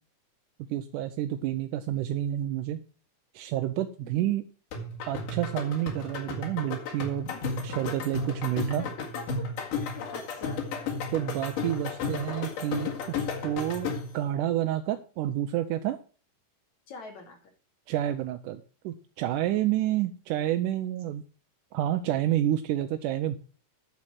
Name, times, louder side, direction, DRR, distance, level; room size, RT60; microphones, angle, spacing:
voice 1, 0.7-2.8 3.3-4.4 5.1-7.3 7.6-8.8 11.1-16.0 17.9-21.2 21.7-23.4, right 12 dB, 85° right, 7 dB, 2.2 m, -29 dB
sound 1, 4.7-14.2, left 4 dB, 85° left, 3.6 m, -34 dB
voice 2, 8.8-9.1 9.8-10.8 16.9-17.5, left 4 dB, 60° left, 1 dB, 3.9 m, -44 dB
9.2 x 7.4 x 6.0 m, 0.38 s
omnidirectional pair, 3.7 m